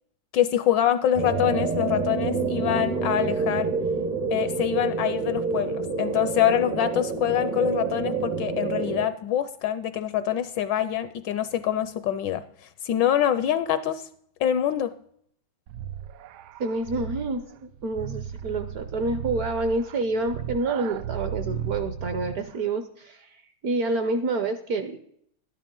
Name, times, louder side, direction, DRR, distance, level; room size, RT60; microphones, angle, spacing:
voice 1, 0.3-3.7 4.3-12.4 12.8-14.1 14.4-14.9, left 11 dB, 75° left, 13 dB, 1.1 m, -25 dB
sound 1, 1.1-9.1, right 4 dB, 45° right, 0.5 m, -28 dB
sound 2, 15.7-22.5, right 9 dB, 90° right, 1.5 m, -35 dB
voice 2, 16.6-25.0, right 3 dB, 60° right, 9 dB, 1.0 m, -28 dB
12.0 x 10.5 x 3.7 m, 0.67 s
omnidirectional pair, 2.2 m